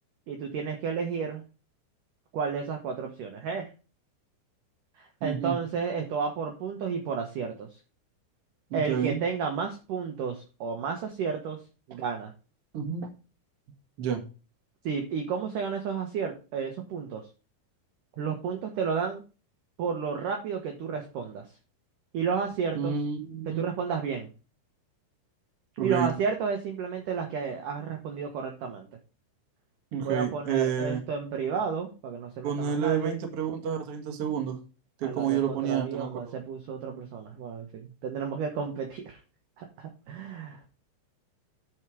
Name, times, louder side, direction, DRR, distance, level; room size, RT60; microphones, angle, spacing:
voice 1, 0.3-1.4 2.3-3.7 5.0-7.7 8.7-11.6 11.9-12.3 14.8-17.2 18.2-19.2 19.8-21.4 22.1-23.0 23.5-24.3 25.8-28.9 30.0-33.2 35.0-39.2 39.6-40.6, right 6 dB, 75° right, 4 dB, 1.9 m, -32 dB
voice 2, 5.2-5.6 8.7-9.2 12.7-13.1 14.0-14.2 22.7-23.6 25.8-26.1 29.9-31.0 32.4-34.6 35.0-36.3, right 8 dB, 60° right, 3 dB, 1.5 m, -29 dB
11.0 x 4.5 x 4.9 m, 0.32 s
omnidirectional pair, 5.4 m